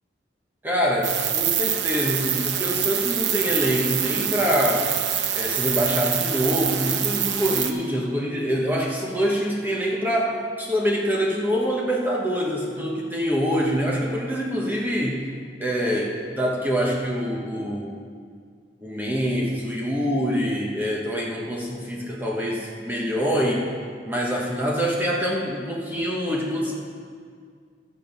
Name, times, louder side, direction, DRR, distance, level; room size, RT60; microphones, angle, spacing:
voice 1, 0.6-4.9 5.3-15.3 15.6-18.0 18.8-23.7 24.0-26.7, equal, 10° right, -3 dB, 1.1 m, -25 dB
sound 1, 1.0-7.7, right 9 dB, 90° right, 0.8 m, -25 dB
13.5 x 7.2 x 5.3 m, 2.1 s
head